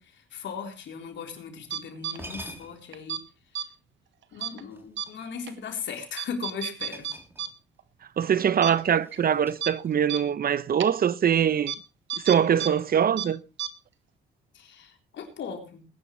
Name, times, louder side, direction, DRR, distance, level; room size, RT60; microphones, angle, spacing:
voice 1, 0.0-3.2 4.3-7.1 14.5-15.9, left 6 dB, 65° left, 3.8 m, -38 dB
sound 1, 1.7-1.8 2.1-3.0 4.7-5.6 6.8-7.8 8.0-8.2 8.7-10.2, right 1 dB, 10° right, 3.4 m, -46 dB
sound 2, 1.7-2.2 2.9-3.2 3.5-3.7 4.4-4.6 5.0-5.1 5.5-5.6 6.2-7.5 7.8-7.9 8.3-8.4 8.6-8.7 9.1-9.2 9.6-9.7 10.1-10.2 10.8-10.9 11.7-11.8 12.1-12.7 12.9-13.3 13.6-13.7, right 10 dB, 70° right, 1.5 m, -31 dB
voice 2, 8.2-11.7 12.2-13.4, right 8 dB, 50° right, 0.8 m, -23 dB
20.5 x 11.0 x 3.2 m
cardioid pair, 90°, 20 cm